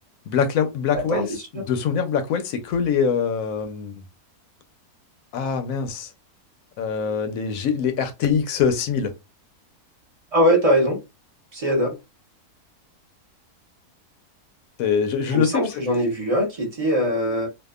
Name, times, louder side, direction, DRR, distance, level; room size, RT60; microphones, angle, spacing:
voice 1, 0.3-4.0 5.3-6.1 6.8-9.1 14.8-15.8, left 7 dB, 70° left, 0.9 m, -24 dB
voice 2, 0.9-1.3 10.3-11.0 11.5-11.9 15.3-17.5, equal, 30° right, 0.7 m, -21 dB
2.7 x 2.3 x 2.3 m
omnidirectional pair, 1.6 m